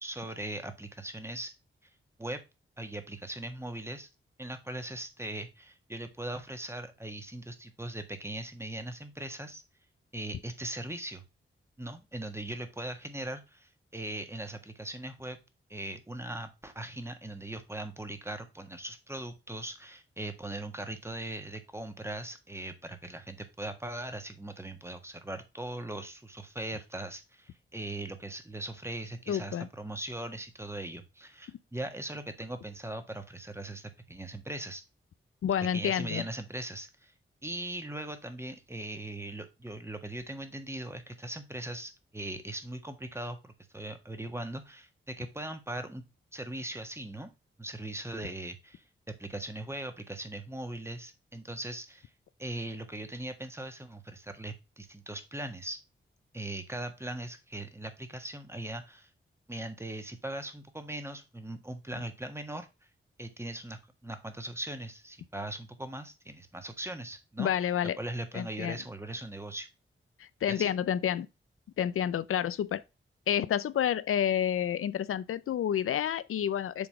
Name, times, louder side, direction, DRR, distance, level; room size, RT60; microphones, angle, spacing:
voice 1, 0.0-1.5 2.2-2.4 2.8-4.1 4.4-9.6 10.1-11.2 11.8-15.4 15.7-34.8 35.7-37.1 37.4-46.0 46.3-47.3 47.6-52.1 52.4-55.8 56.3-59.1 59.5-62.7 63.2-67.5 68.0-69.7 70.5-70.7, right 1 dB, 10° right, 1.5 m, -40 dB
voice 2, 29.3-29.7 35.4-36.2 67.4-68.0 68.3-68.8 70.2-71.3 71.8-72.8 73.3-76.9, left 9 dB, 85° left, 0.5 m, -29 dB
7.1 x 4.0 x 4.8 m
cardioid pair, 70°, 21 cm